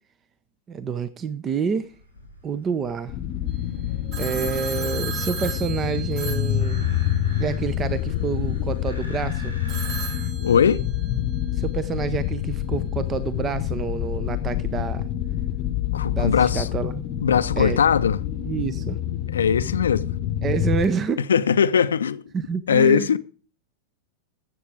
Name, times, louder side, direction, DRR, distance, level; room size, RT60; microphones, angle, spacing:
voice 1, 0.7-1.9 2.4-3.1 4.2-6.8 7.4-9.5 11.5-15.1 16.1-17.0 17.6-17.8 18.4-19.0 20.4-21.2 22.3-23.1, right 6 dB, 25° right, 0.8 m, -28 dB
sound 1, 1.8-10.3, left 3 dB, 85° right, 3.7 m, -40 dB
sound 2, 3.1-20.8, left 11 dB, 40° left, 0.9 m, -27 dB
Telephone, 4.1-7.4 9.7-11.2, right 7 dB, 40° right, 2.6 m, -36 dB
voice 2, 10.4-10.8 15.9-16.7 17.2-18.2 19.3-20.1 21.3-22.2 22.7-23.2, left 7 dB, 70° left, 0.6 m, -20 dB
13.5 x 8.3 x 4.8 m
figure-of-eight pair, 90°, 0 cm